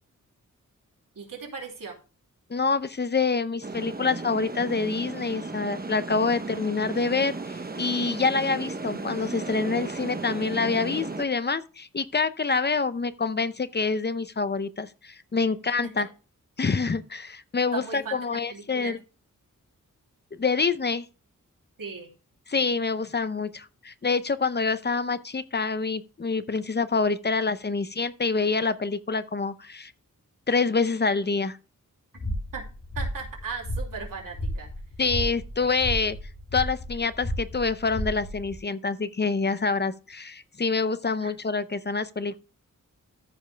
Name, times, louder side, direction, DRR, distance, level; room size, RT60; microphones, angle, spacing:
voice 1, 1.1-2.0 15.8-16.0 17.7-19.0 21.8-22.1 32.1-32.6 32.9-34.7 41.2-41.3, right 5 dB, 85° right, 3.1 m, -38 dB
voice 2, 2.5-16.1 16.6-19.0 20.3-21.1 22.5-29.9 30.5-31.6 35.0-36.2 36.5-42.4, left 4 dB, 30° left, 0.7 m, -26 dB
sound 1, 3.6-11.3, right 3 dB, 30° right, 1.0 m, -35 dB
sound 2, 32.2-38.6, equal, 55° left, 2.5 m, -33 dB
14.0 x 5.3 x 3.4 m
wide cardioid pair, 105°, 32 cm